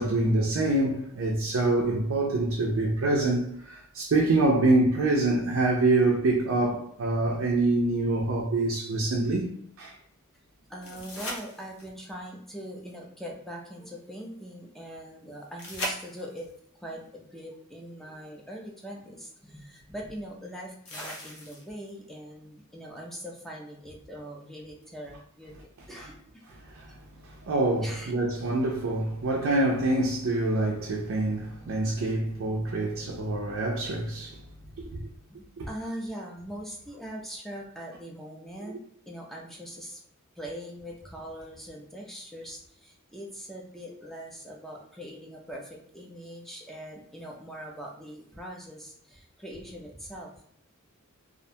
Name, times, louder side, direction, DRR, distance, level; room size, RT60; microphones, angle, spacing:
voice 1, 0.0-9.9 26.6-26.9 27.2-34.4 34.8-35.0 35.6-35.7 38.7-38.8, right 2 dB, 65° right, 0.4 m, -26 dB
voice 2, 10.7-16.5 16.8-26.4 27.8-28.1 35.3-38.8 39.1-40.0 40.4-50.3, equal, ahead, 0.4 m, -42 dB
sound 1, 10.8-12.1 15.6-16.6 18.5-18.6 20.9-21.9 24.8-24.9, equal, 85° left, 0.8 m, -38 dB
2.4 x 2.1 x 2.7 m
head